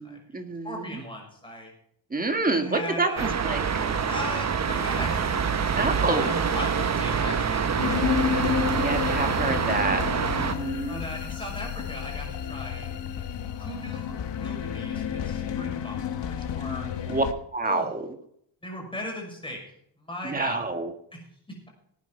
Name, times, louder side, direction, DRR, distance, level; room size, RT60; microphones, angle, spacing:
voice 1, 0.0-1.0 2.1-3.7 5.8-6.3 8.8-10.0 10.4-11.0 16.7-17.2 17.5-18.1 20.2-20.9, right 3 dB, 20° right, 5 dB, 1.8 m, -28 dB
voice 2, 0.6-1.7 2.5-3.3 4.1-5.4 6.1-8.5 10.9-12.9 13.6-16.9 17.6-17.9 18.6-19.6 20.0-20.6 21.1-21.2 21.5-21.7, left 1 dB, 10° left, -1 dB, 5.7 m, -38 dB
sound 1, 3.2-10.5, right 6 dB, 35° right, 1.1 m, -26 dB
sound 2, 7.8-17.3, left 8 dB, 70° left, 1.5 m, -31 dB
19.0 x 9.4 x 4.5 m, 0.69 s
wide cardioid pair, 150°, 45 cm